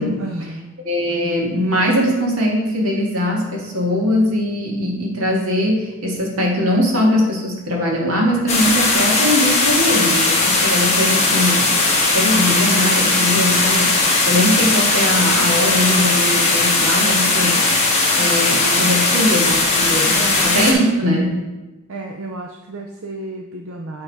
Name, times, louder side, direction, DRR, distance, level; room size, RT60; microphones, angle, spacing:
voice 1, 0.2-0.8 18.7-18.9 20.1-20.8 21.9-24.0, right 2 dB, 65° right, 1 dB, 0.6 m, -32 dB
voice 2, 0.8-11.8 12.1-21.3, left 1 dB, 80° right, -2 dB, 1.9 m, -20 dB
sound 1, 8.5-20.7, left 3 dB, 30° left, 1.4 m, -17 dB
8.9 x 3.7 x 4.7 m, 1.1 s
head